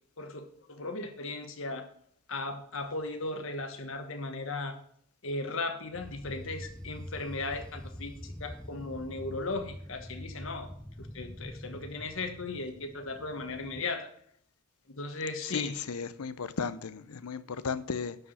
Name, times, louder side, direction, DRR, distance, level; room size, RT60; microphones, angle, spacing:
voice 1, 0.2-1.9 2.3-4.8 5.2-10.7 11.0-14.1 14.9-15.7, left 3 dB, 65° left, 1.3 m, -37 dB
sound 1, 5.9-13.9, equal, 5° left, 0.4 m, -45 dB
voice 2, 15.5-18.2, left 5 dB, 90° left, 0.6 m, -35 dB
11.0 x 4.8 x 6.3 m
head